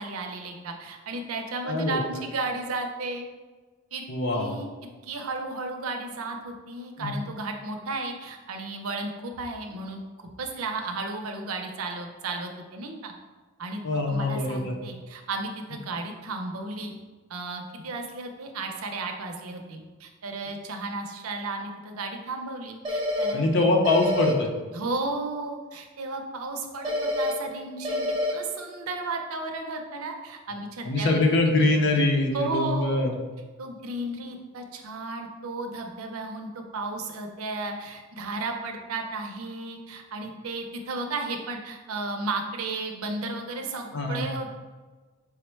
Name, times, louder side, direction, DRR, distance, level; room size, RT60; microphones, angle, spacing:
voice 1, 0.0-3.3 3.9-4.0 4.3-4.7 5.0-10.0 10.4-13.1 13.6-13.8 14.1-17.0 17.3-23.5 24.7-31.5 32.3-33.1 33.6-44.5, right 3 dB, 90° right, 4 dB, 0.6 m, -34 dB
voice 2, 1.6-2.0 4.1-4.6 7.0-7.1 13.8-14.7 23.3-24.5 30.8-33.2 43.9-44.3, left 2 dB, 60° left, 2 dB, 0.6 m, -23 dB
sound 1, 22.8-23.3 23.8-24.3 26.8-27.3 27.8-28.3, left 1 dB, 20° right, 0.6 m, -27 dB
4.7 x 2.1 x 4.4 m, 1.3 s
head